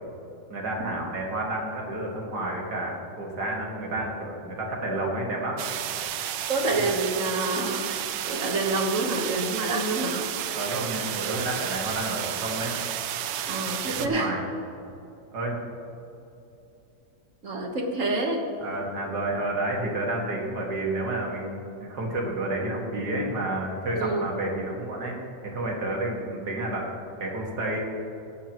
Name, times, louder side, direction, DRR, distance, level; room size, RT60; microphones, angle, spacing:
voice 1, 0.5-5.6 6.8-6.9 10.5-12.8 13.7-14.5 15.3-15.6 18.6-25.2 25.4-27.8, right 1 dB, 65° right, -1 dB, 2.5 m, -30 dB
sound 1, 5.6-14.1, right 10 dB, 90° right, 1.3 m, -32 dB
voice 2, 6.5-7.8 8.2-10.2 13.5-14.3 17.4-18.4 23.9-24.3, right 2 dB, 50° right, 1 dB, 1.6 m, -27 dB
22.5 x 8.0 x 3.0 m, 2.8 s
omnidirectional pair, 1.9 m